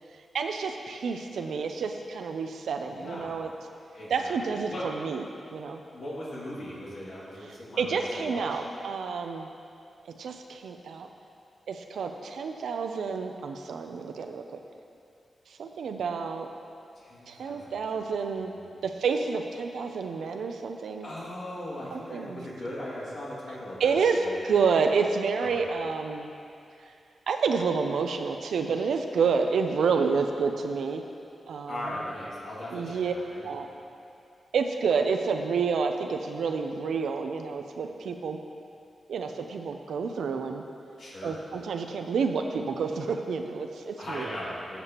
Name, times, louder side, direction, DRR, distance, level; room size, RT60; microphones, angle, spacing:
voice 1, 0.3-3.5 4.1-5.2 5.5-5.8 7.8-9.5 10.1-11.1 11.7-14.4 15.5-16.5 17.3-18.5 18.8-21.1 21.9-22.4 23.8-26.3 27.3-31.0 31.5-32.0 32.7-33.1 33.4-33.7 34.5-38.4 39.1-40.6 41.2-44.4, right 5 dB, 90° right, 5 dB, 0.4 m, -29 dB
voice 2, 2.9-3.4 3.9-4.3 4.7-4.9 5.9-8.6 17.0-17.8 18.4-18.8 21.0-24.4 25.4-25.7 31.7-33.7 41.0-41.4 44.0-44.8, left 1 dB, 75° left, -8 dB, 2.2 m, -39 dB
13.5 x 6.8 x 2.9 m, 2.6 s
cardioid pair, 75°, 0 cm